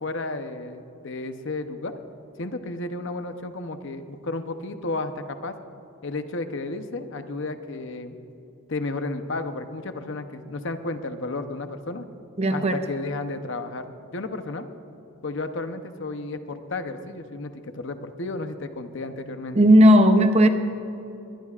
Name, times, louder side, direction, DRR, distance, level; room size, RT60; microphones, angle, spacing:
voice 1, 0.0-1.9 2.4-5.5 6.0-8.2 8.7-12.1 12.5-13.8 14.1-14.7 15.2-19.6, left 2 dB, 55° left, 8 dB, 0.8 m, -32 dB
voice 2, 12.4-12.8 19.5-20.5, equal, 30° right, 7 dB, 0.7 m, -15 dB
21.0 x 20.5 x 2.5 m, 2.8 s
head